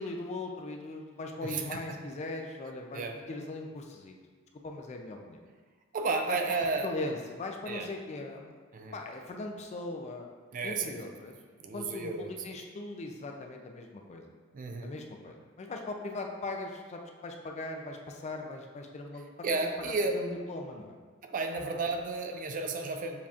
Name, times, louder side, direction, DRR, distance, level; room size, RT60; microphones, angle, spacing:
voice 1, 0.0-4.2 4.6-5.4 6.3-6.4 6.8-8.5 8.9-10.3 10.6-11.4 11.7-14.2 14.8-19.3 20.1-21.0, left 2 dB, 30° left, 3 dB, 0.4 m, -39 dB
voice 2, 1.4-1.8 2.9-3.2 5.9-6.9 7.7-7.9 8.7-8.9 10.5-10.9 11.6-12.3 14.5-14.9 19.4-20.1 21.2-23.3, right 3 dB, 40° right, 4 dB, 0.4 m, -32 dB
6.9 x 2.8 x 2.4 m, 1.5 s
head